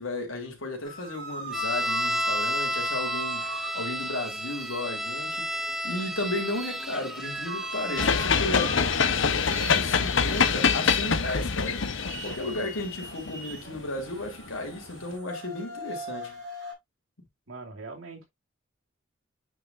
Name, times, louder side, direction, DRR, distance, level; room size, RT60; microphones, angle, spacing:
voice 1, 0.0-5.5 5.8-8.8 9.5-11.8 12.2-16.4, left 2 dB, 85° left, 3.2 m, -34 dB
sound 1, 0.8-16.7, right 1 dB, 55° right, 3.9 m, -41 dB
sound 2, 1.5-8.1, equal, ahead, 0.4 m, -31 dB
sound 3, 8.0-14.3, left 6 dB, 70° left, 0.8 m, -25 dB
voice 2, 17.5-18.2, right 3 dB, 90° right, 2.5 m, -41 dB
9.2 x 5.0 x 2.5 m
head